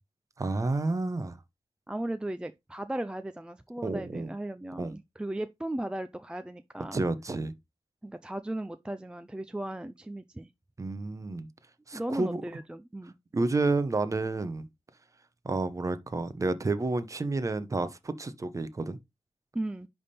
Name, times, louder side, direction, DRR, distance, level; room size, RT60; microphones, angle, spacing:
voice 1, 0.4-1.4 3.8-4.3 4.8-4.9 6.9-7.5 10.8-11.5 11.9-12.4 13.3-14.7 15.4-19.0, right 3 dB, 30° right, 0.8 m, -30 dB
voice 2, 1.9-7.0 8.0-10.5 11.9-13.1 19.5-19.9, right 1 dB, 10° right, 0.4 m, -36 dB
10.5 x 3.5 x 4.2 m
wide cardioid pair, 150°, 11 cm